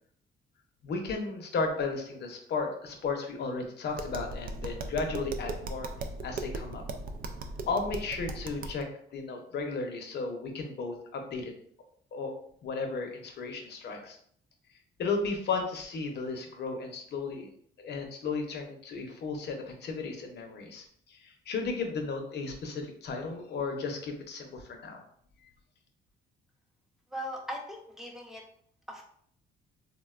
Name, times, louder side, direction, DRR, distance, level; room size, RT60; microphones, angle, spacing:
voice 1, 0.8-5.9 6.2-6.8 7.7-11.5 12.1-12.3 12.6-14.2 15.0-17.5 17.8-25.0, left 4 dB, 60° left, 3 dB, 0.7 m, -34 dB
Tap, 3.9-8.8, right 3 dB, 45° right, 0.4 m, -38 dB
voice 2, 27.1-28.4 28.9-29.0, equal, ahead, 0 dB, 0.7 m, -39 dB
3.6 x 2.1 x 2.3 m, 0.63 s
cardioid pair, 90°, 20 cm